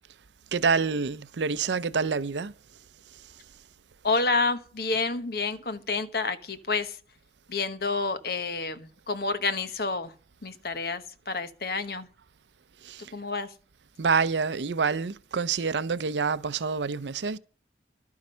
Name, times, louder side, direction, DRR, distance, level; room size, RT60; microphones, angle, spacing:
voice 1, 0.5-2.5 3.1-3.4 12.8-13.1 14.0-17.4, right 5 dB, 90° right, 0.6 m, -27 dB
voice 2, 4.0-7.0 7.5-10.1 10.4-12.1 13.0-13.5, left 3 dB, 60° left, 1.1 m, -29 dB
12.0 x 9.4 x 5.6 m
head